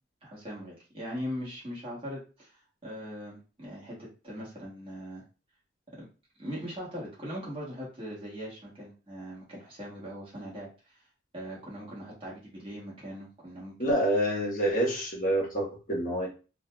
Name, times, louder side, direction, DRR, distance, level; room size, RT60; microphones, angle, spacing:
voice 1, 0.2-5.2 6.0-6.1 6.4-11.0 11.3-13.7, equal, 25° right, -5 dB, 1.4 m, -40 dB
voice 2, 13.8-16.3, right 1 dB, 45° left, -2 dB, 1.1 m, -27 dB
3.9 x 2.6 x 2.2 m, 0.34 s
head